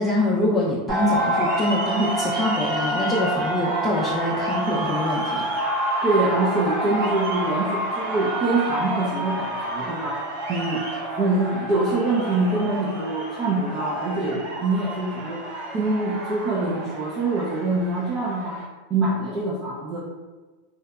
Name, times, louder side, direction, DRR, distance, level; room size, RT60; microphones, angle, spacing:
voice 1, 0.0-5.5, left 1 dB, 20° left, -6 dB, 0.4 m, -24 dB
sound 1, 0.9-18.6, right 1 dB, 85° right, 0.9 m, -28 dB
voice 2, 6.0-10.2 10.5-10.9 11.2-15.4 15.7-18.6 18.9-20.0, right 2 dB, 35° right, -7 dB, 0.5 m, -24 dB
2.8 x 2.0 x 2.3 m, 1.3 s
hypercardioid pair, 100°, 0 cm